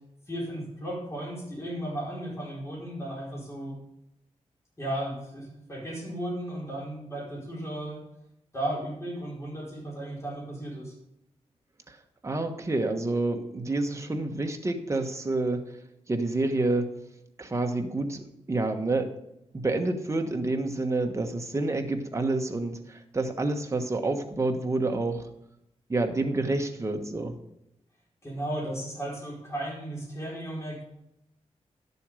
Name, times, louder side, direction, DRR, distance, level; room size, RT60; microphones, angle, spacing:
voice 1, 0.3-3.8 4.8-8.0 8.5-10.9 28.2-30.8, right 1 dB, 25° left, -4 dB, 4.7 m, -35 dB
voice 2, 12.2-15.6 16.1-16.9 17.4-19.1 19.5-25.3 25.9-27.3, right 2 dB, 25° right, 4 dB, 1.3 m, -28 dB
11.5 x 7.0 x 4.9 m, 0.82 s
wide cardioid pair, 115°, 12 cm